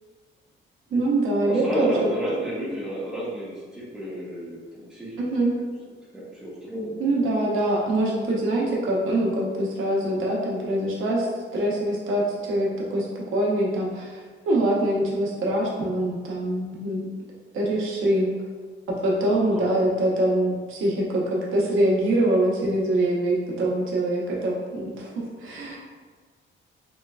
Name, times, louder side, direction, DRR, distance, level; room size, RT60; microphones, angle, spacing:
voice 1, 0.9-2.1 5.2-5.5 7.0-13.1 13.3-17.0 17.5-18.3 18.9-25.8, right 1 dB, 75° right, -4 dB, 0.8 m, -24 dB
voice 2, 1.4-5.4 6.1-7.0 19.5-19.7, right 1 dB, 5° right, -8 dB, 0.7 m, -31 dB
3.2 x 3.0 x 2.3 m, 1.5 s
cardioid pair, 170°, 21 cm